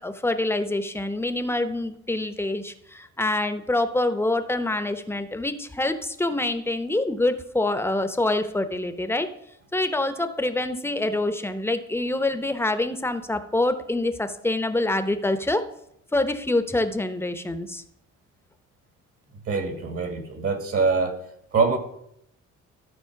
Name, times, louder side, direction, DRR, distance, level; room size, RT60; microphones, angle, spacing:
voice 1, 0.0-9.3 9.7-15.6 16.1-17.8, left 2 dB, 10° left, 9 dB, 0.8 m, -26 dB
voice 2, 19.5-21.2 21.5-21.8, right 4 dB, 50° right, 6 dB, 1.8 m, -24 dB
13.0 x 4.3 x 5.8 m, 0.74 s
cardioid pair, 90°, 30 cm